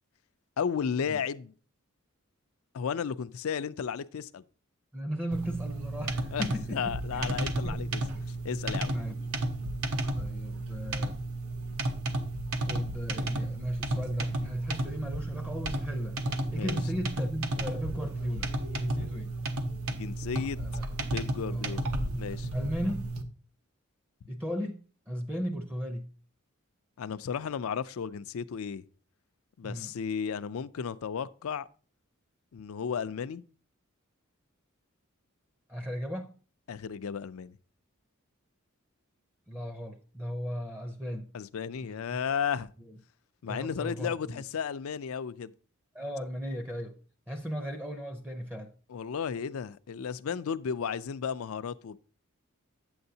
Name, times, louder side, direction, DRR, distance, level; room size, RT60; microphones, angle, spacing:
voice 1, 0.6-1.5 2.7-4.4 6.3-8.0 8.3-8.9 16.6-16.8 19.9-20.6 21.0-22.5 27.0-28.8 29.6-31.7 32.5-33.4 36.7-37.6 41.3-42.7 43.4-45.5 48.9-52.0, left 7 dB, 75° left, 0.4 m, -34 dB
voice 2, 4.9-7.4 7.6-8.0 8.8-9.2 10.2-11.2 12.7-16.2 16.5-18.5 18.8-19.3 20.6-21.0 21.5-21.7 22.5-23.1 24.3-24.8 25.1-26.1 29.6-29.9 35.7-36.3 39.5-41.3 41.8-42.2 42.8-42.9 43.5-44.4 45.9-46.9 47.3-48.7, equal, 10° right, 0.6 m, -36 dB
sound 1, 5.3-23.2, right 1 dB, 80° right, 0.9 m, -33 dB
8.6 x 7.9 x 2.7 m
head